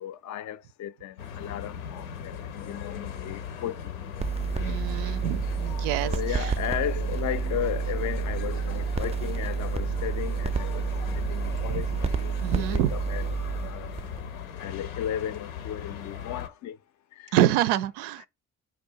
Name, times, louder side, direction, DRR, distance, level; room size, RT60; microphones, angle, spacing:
voice 1, 0.0-3.8 4.7-4.8 6.0-10.9 11.2-14.0 14.6-16.8 17.2-17.4 18.2-18.3, left 11 dB, 45° left, 0.5 m, -35 dB
sound 1, 1.2-16.5, left 8 dB, 90° left, 0.7 m, -38 dB
sound 2, 4.2-14.4, right 6 dB, 15° right, 0.4 m, -30 dB
voice 2, 4.6-6.5 11.7-11.8 12.4-12.9 17.3-18.3, right 13 dB, 70° right, 0.5 m, -27 dB
4.8 x 2.4 x 4.4 m
hypercardioid pair, 55°, 41 cm